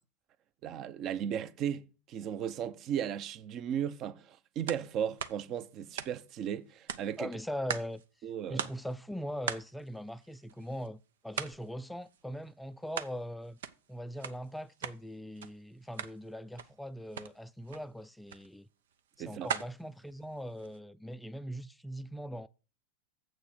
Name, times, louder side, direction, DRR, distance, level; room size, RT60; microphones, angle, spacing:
voice 1, 0.6-7.3 8.2-8.7 19.2-19.5, right 9 dB, 40° right, 0.8 m, -36 dB
sound 1, 4.7-4.9 5.2-6.5 6.9-8.1 8.3-8.4 8.6-8.9 9.5-10.9 11.3-11.7 12.0-13.2 13.4-15.0 15.4-15.5 15.8-16.2 16.5-16.8 17.1-17.3 17.7-17.8 18.3-18.5 18.9-20.8, right 8 dB, 85° right, 0.7 m, -40 dB
voice 2, 7.2-8.0 8.5-13.6 13.9-18.7 19.2-22.5, equal, 5° left, 0.4 m, -41 dB
7.5 x 6.4 x 6.4 m
supercardioid pair, 120°, 0 cm